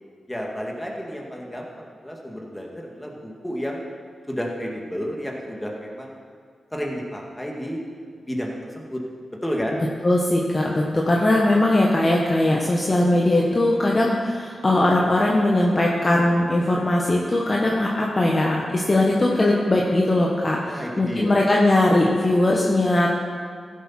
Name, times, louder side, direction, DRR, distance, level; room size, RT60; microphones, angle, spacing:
voice 1, 0.3-3.8 4.3-6.2 6.7-7.8 8.2-9.0 9.4-9.8 20.7-21.4, equal, 10° left, -1 dB, 2.1 m, -31 dB
voice 2, 10.0-23.1, left 1 dB, 35° left, -2 dB, 1.4 m, -20 dB
14.5 x 8.0 x 4.5 m, 2.1 s
cardioid pair, 60°, 0 cm